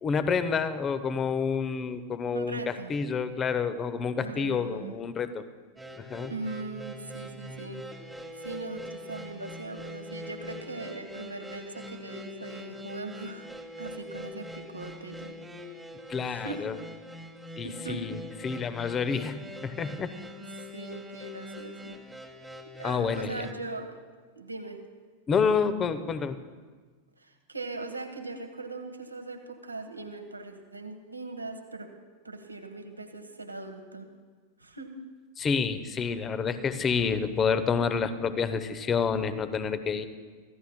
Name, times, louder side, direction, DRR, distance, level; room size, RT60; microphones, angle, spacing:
voice 1, 0.0-5.4 6.0-6.3 16.1-16.8 17.6-18.2 18.4-20.1 22.8-23.5 25.3-26.4 35.4-40.1, left 6 dB, 25° left, 12 dB, 0.8 m, -28 dB
voice 2, 2.3-2.9 4.2-4.9 6.3-7.9 8.4-13.5 13.8-15.3 16.3-16.6 17.6-18.0 20.4-20.5 20.7-22.0 22.8-24.0 24.4-24.8 27.2-31.9 32.2-34.1 34.6-34.9 40.0-40.1, right 3 dB, 80° right, 5 dB, 1.3 m, -40 dB
sound 1, 5.8-23.5, left 1 dB, 5° right, 1.3 m, -43 dB
25.5 x 15.5 x 2.2 m, 1.5 s
figure-of-eight pair, 90°, 0 cm